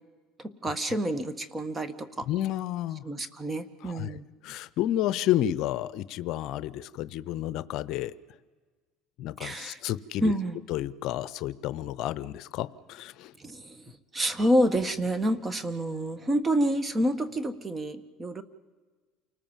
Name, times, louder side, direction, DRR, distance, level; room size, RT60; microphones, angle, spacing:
voice 1, 0.6-2.3 3.0-4.2 9.4-9.8 10.2-10.6 13.4-13.8 14.1-18.4, equal, 20° right, 13 dB, 1.7 m, -28 dB
voice 2, 2.3-3.0 3.8-4.2 4.4-8.1 9.2-10.3 10.7-13.3, left 13 dB, 60° left, 17 dB, 0.7 m, -31 dB
29.0 x 19.5 x 7.4 m, 1.4 s
supercardioid pair, 115°, 0 cm